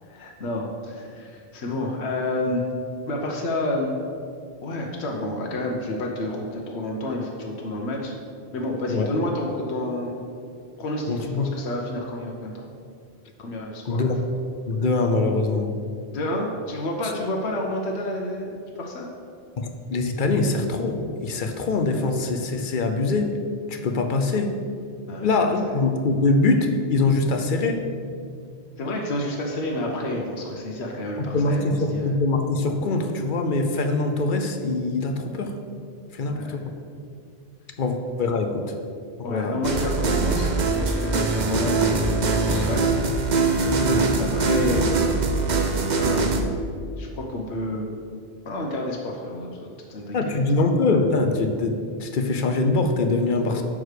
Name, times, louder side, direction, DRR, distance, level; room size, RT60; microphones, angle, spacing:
voice 1, 0.1-2.6 3.1-4.0 4.6-8.1 8.5-10.2 10.8-12.5 13.4-14.1 16.1-19.1 25.1-25.3 28.8-32.1 36.3-36.6 39.2-40.5 40.8-43.0 44.2-44.9 45.9-46.5 47.0-47.9 48.4-50.4 53.5-53.6, left 1 dB, 85° left, 0 dB, 1.1 m, -29 dB
voice 2, 11.1-11.5 13.9-14.1 14.7-15.7 17.0-17.1 19.6-23.3 23.7-24.5 25.2-27.8 31.3-35.5 36.1-36.6 37.8-38.7 39.2-39.6 42.5-42.7 43.6-44.2 50.1-53.6, left 3 dB, 55° left, 5 dB, 0.7 m, -23 dB
sound 1, 39.6-46.4, right 3 dB, 50° right, 0.7 m, -22 dB
6.0 x 4.8 x 6.5 m, 2.3 s
omnidirectional pair, 1.1 m